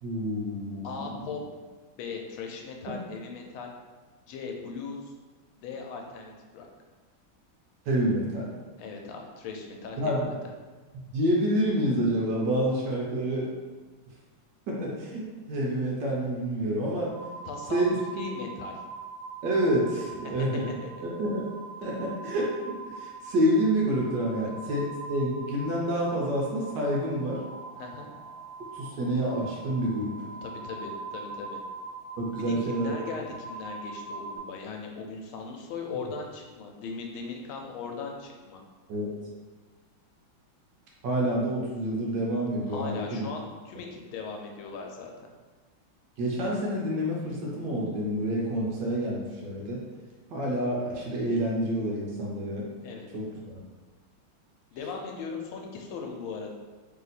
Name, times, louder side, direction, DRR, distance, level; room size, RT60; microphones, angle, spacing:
voice 1, 0.0-1.3 7.8-8.5 10.0-10.3 11.1-13.5 14.7-17.1 17.7-18.2 19.4-20.7 21.0-21.4 21.8-22.6 22.9-27.4 28.7-30.1 32.2-32.9 36.0-36.1 38.9-39.1 41.0-43.3 46.2-49.8 50.3-52.7 53.1-53.6, right 1 dB, 65° right, -3 dB, 1.3 m, -28 dB
voice 2, 0.8-1.4 2.0-3.7 4.3-5.1 5.6-6.7 8.8-10.3 17.4-18.7 20.2-20.5 20.8-20.9 27.8-28.1 30.4-31.6 32.4-38.6 42.7-45.1 52.8-53.1 54.7-56.5, left 4 dB, 90° left, 2 dB, 1.5 m, -39 dB
sound 1, 17.1-34.4, right 3 dB, 65° left, 0.9 m, -42 dB
3.4 x 2.8 x 4.0 m, 1.3 s
omnidirectional pair, 2.2 m